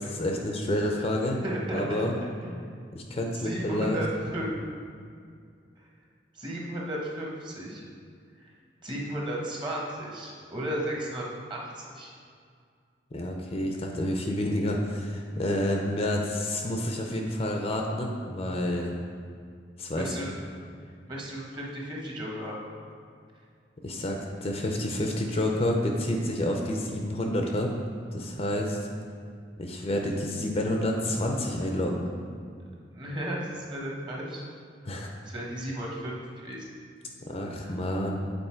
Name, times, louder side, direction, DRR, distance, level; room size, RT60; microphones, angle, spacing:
voice 1, 0.0-1.4 1.7-2.1 2.9-4.0 13.1-18.9 19.8-20.1 23.8-27.7 28.1-28.8 29.6-32.1 34.9-35.1 37.3-38.2, left 1 dB, 30° left, 1 dB, 0.5 m, -29 dB
voice 2, 1.4-2.0 2.4-2.6 3.3-4.1 4.3-4.5 5.8-5.9 6.3-7.8 8.4-8.5 8.8-11.2 11.5-12.1 19.9-20.3 21.1-22.6 32.9-34.4 35.2-36.6 37.6-37.7, right 1 dB, 25° right, -3 dB, 1.1 m, -34 dB
7.9 x 4.0 x 4.4 m, 2.2 s
head